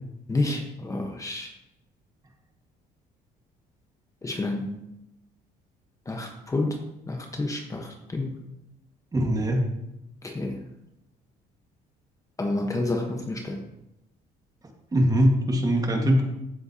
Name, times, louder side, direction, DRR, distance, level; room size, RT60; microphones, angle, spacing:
voice 1, 0.3-1.5 4.2-4.7 6.1-6.8 7.1-8.4 10.2-10.6 12.4-13.6, left 2 dB, 20° left, 3 dB, 1.2 m, -29 dB
voice 2, 9.1-9.6 14.9-16.2, equal, 20° right, 2 dB, 1.7 m, -21 dB
15.0 x 7.7 x 2.9 m, 0.88 s
cardioid pair, 110°, 17 cm